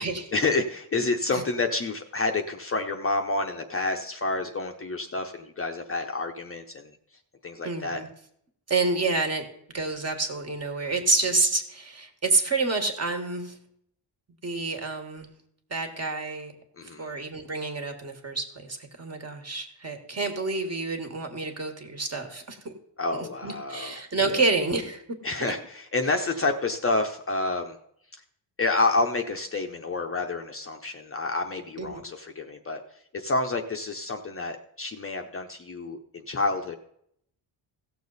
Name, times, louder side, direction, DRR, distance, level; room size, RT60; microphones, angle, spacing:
voice 1, 0.3-6.9 7.4-8.0 16.8-17.1 23.0-23.9 24.3-24.4 25.2-27.8 28.6-32.8 33.1-36.8, left 3 dB, 30° left, 4 dB, 0.7 m, -29 dB
voice 2, 7.6-8.1 8.7-9.4 9.7-13.6 14.4-15.3 15.7-16.5 17.0-22.7 23.1-25.0 31.8-32.0, right 3 dB, 35° right, 5 dB, 1.5 m, -28 dB
16.0 x 6.8 x 4.0 m, 0.72 s
wide cardioid pair, 140°, 46 cm